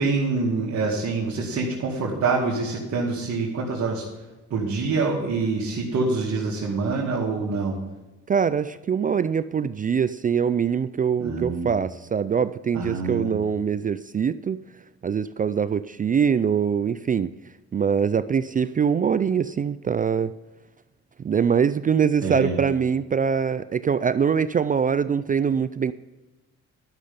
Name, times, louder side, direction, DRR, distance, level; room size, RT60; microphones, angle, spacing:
voice 1, 0.0-4.0 4.5-7.8 11.2-11.7 12.7-13.3 22.2-22.6, right 4 dB, 60° right, -4 dB, 2.3 m, -25 dB
voice 2, 8.3-14.6 15.0-17.3 17.7-20.3 21.2-25.9, right 7 dB, 30° right, 14 dB, 0.3 m, -23 dB
12.0 x 6.5 x 5.7 m, 1.1 s
cardioid pair, 90°, 30 cm